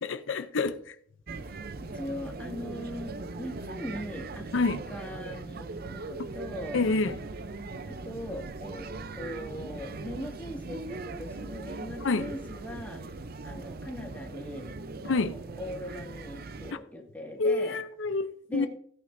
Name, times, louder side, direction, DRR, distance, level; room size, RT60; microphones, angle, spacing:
voice 1, 0.0-0.9 4.5-4.8 6.7-7.2 12.0-12.3 15.0-15.3 17.4-18.7, left 3 dB, 90° left, 0.7 m, -27 dB
sound 1, 1.3-16.7, right 3 dB, 55° right, 0.6 m, -40 dB
voice 2, 1.9-6.9 7.9-13.0 13.4-14.8 15.0-17.8 18.5-18.7, equal, 10° left, 2.0 m, -40 dB
16.5 x 9.3 x 2.7 m
head